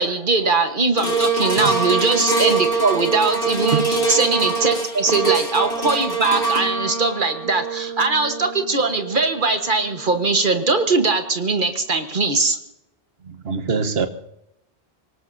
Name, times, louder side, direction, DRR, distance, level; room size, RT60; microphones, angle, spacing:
voice 1, 0.0-12.6, right 3 dB, 50° right, 1.5 m, -21 dB
sound 1, 1.0-11.4 11.9-12.0, right 3 dB, 55° left, 2.7 m, -24 dB
voice 2, 13.2-14.1, right 5 dB, 70° right, 1.3 m, -23 dB
25.0 x 18.0 x 2.8 m
omnidirectional pair, 1.1 m